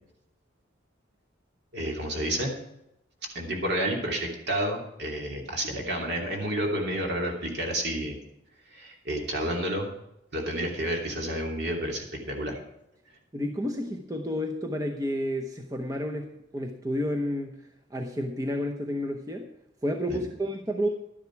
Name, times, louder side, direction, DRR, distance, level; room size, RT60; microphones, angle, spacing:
voice 1, 1.7-2.5 3.2-8.2 8.7-9.9 10.3-12.5 20.1-20.2, right 1 dB, 60° right, 0 dB, 2.9 m, -30 dB
voice 2, 13.3-17.6 17.9-19.5 19.8-20.9, equal, 20° right, 2 dB, 0.8 m, -30 dB
12.0 x 10.0 x 4.7 m, 0.84 s
head